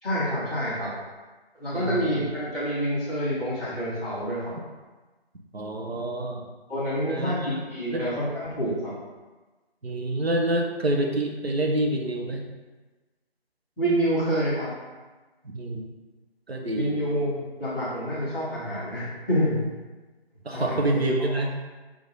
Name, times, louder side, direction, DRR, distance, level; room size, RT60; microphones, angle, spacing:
voice 1, 0.0-0.9 1.5-4.5 6.7-8.9 13.8-14.7 16.6-19.6 20.5-21.3, equal, ahead, -22 dB, 1.1 m, -27 dB
voice 2, 1.7-2.2 5.5-6.4 7.1-7.5 7.9-8.1 9.8-12.4 15.5-15.8 16.5-16.9 20.4-21.5, right 1 dB, 75° right, 1 dB, 1.2 m, -27 dB
6.9 x 3.7 x 3.9 m, 1.2 s
figure-of-eight pair, 165°, 31 cm